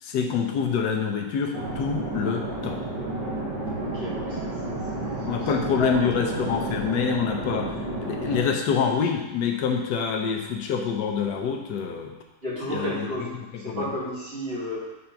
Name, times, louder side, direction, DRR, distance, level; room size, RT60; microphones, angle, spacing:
voice 1, 0.0-2.8 5.2-12.2 12.7-13.1 13.5-13.9, left 6 dB, 80° left, 3 dB, 1.3 m, -26 dB
sound 1, 1.5-8.4, right 2 dB, 85° right, 1.9 m, -31 dB
voice 2, 3.7-4.8 5.2-6.2 12.4-13.3 13.6-14.8, left 1 dB, 35° right, -9 dB, 2.3 m, -32 dB
5.7 x 3.8 x 5.7 m, 1.0 s
omnidirectional pair, 1.8 m